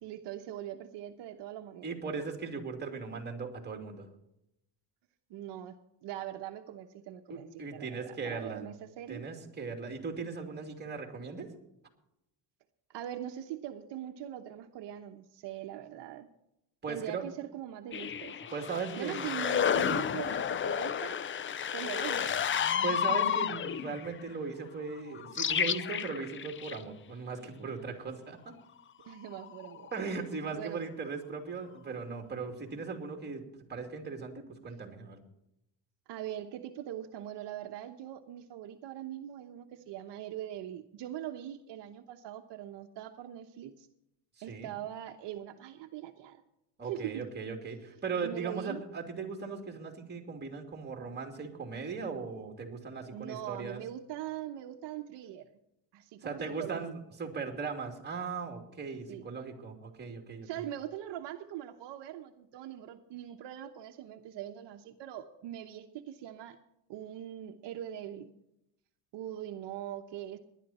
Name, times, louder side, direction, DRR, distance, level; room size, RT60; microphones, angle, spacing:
voice 1, 0.0-1.9 5.3-5.8 6.0-9.2 12.9-16.3 16.9-18.4 19.0-21.2 21.7-22.4 29.0-29.9 30.5-30.8 36.1-43.9 44.4-46.4 46.8-47.3 48.2-48.8 53.1-55.5 55.9-56.9 59.1-59.3 60.4-66.6 66.9-68.3 69.1-70.4, right 11 dB, 65° right, 5 dB, 1.0 m, -42 dB
voice 2, 1.8-4.1 7.3-8.6 9.1-11.5 16.8-17.2 18.5-19.3 22.8-28.5 29.9-33.4 33.7-34.3 34.6-35.2 44.5-44.7 46.8-53.8 56.2-60.6, right 5 dB, 20° right, 3 dB, 2.7 m, -38 dB
sound 1, 17.9-24.1 25.1-26.8 29.2-30.0, left 8 dB, 30° left, 0.5 m, -31 dB
19.5 x 11.0 x 4.3 m, 0.83 s
cardioid pair, 130°, 45 cm